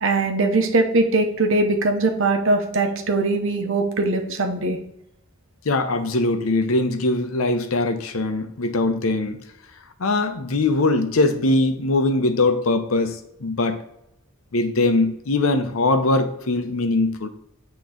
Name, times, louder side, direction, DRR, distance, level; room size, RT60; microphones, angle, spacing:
voice 1, 0.0-4.8, right 2 dB, 70° right, 5 dB, 0.9 m, -21 dB
voice 2, 5.6-9.4 10.0-13.8 14.5-17.3, left 2 dB, 85° left, 8 dB, 0.7 m, -21 dB
8.5 x 3.1 x 3.8 m, 0.80 s
head